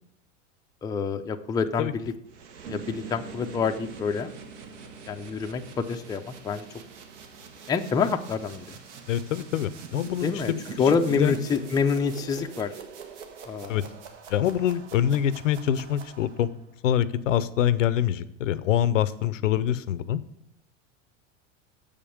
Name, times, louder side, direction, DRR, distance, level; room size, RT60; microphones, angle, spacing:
voice 1, 0.8-2.1 2.7-4.3 5.1-6.6 7.7-8.6 10.2-10.5 10.8-12.7 13.5-13.8, left 5 dB, 10° left, 5 dB, 0.4 m, -27 dB
sound 1, 2.3-16.6, right 6 dB, 70° right, 1.4 m, -44 dB
Piano, 2.6-10.7, right 5 dB, 55° right, 2.0 m, -46 dB
voice 2, 9.1-10.6 11.1-11.3 13.7-13.8 14.3-16.5 16.8-20.2, left 11 dB, 85° left, 16 dB, 0.7 m, -25 dB
7.0 x 5.1 x 7.0 m, 0.82 s
hypercardioid pair, 105°, 37 cm